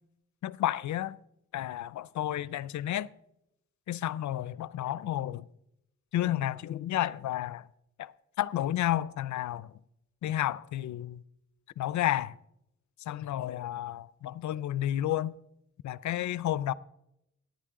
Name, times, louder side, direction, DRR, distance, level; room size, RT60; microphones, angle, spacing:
voice 1, 0.4-1.2 1.5-3.1 3.9-5.5 6.1-7.7 8.0-8.1 8.4-9.7 10.2-11.2 11.8-12.3 13.1-15.3 15.8-16.7, left 13 dB, 70° left, 0.5 m, -31 dB
17.0 x 9.4 x 3.7 m
cardioid pair, 105°, 30 cm